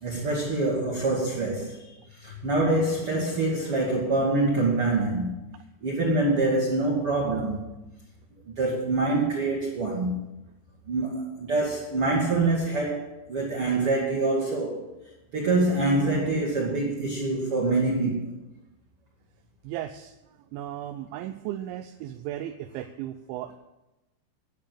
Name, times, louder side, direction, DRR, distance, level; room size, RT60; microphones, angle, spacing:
voice 1, 0.0-1.9 2.2-5.4 5.8-7.7 8.5-10.2 10.9-14.8 15.3-18.3, right 2 dB, 40° right, 2.2 m, -25 dB
voice 2, 19.6-20.1 20.5-23.5, right 12 dB, 85° right, 3.0 m, -35 dB
11.5 x 9.0 x 7.5 m
omnidirectional pair, 5.3 m